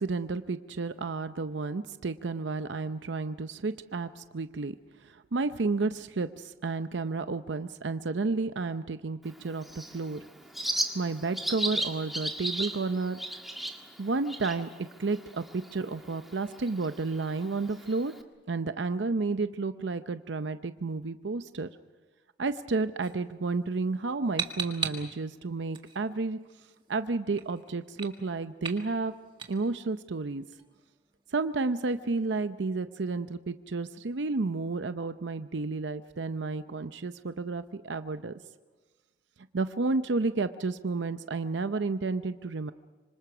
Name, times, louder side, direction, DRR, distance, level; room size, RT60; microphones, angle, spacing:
voice 1, 0.0-4.8 5.0-10.2 10.9-13.2 14.0-14.7 15.0-18.1 18.5-21.7 22.4-26.4 26.9-29.1 29.5-30.5 31.3-38.3 39.5-42.7, right 3 dB, 90° right, 10 dB, 0.7 m, -31 dB
Bird, 9.2-18.2, right 1 dB, ahead, 1.7 m, -37 dB
sound 1, 23.0-32.8, right 5 dB, 25° right, 1.8 m, -42 dB
25.5 x 25.5 x 6.1 m, 1.3 s
head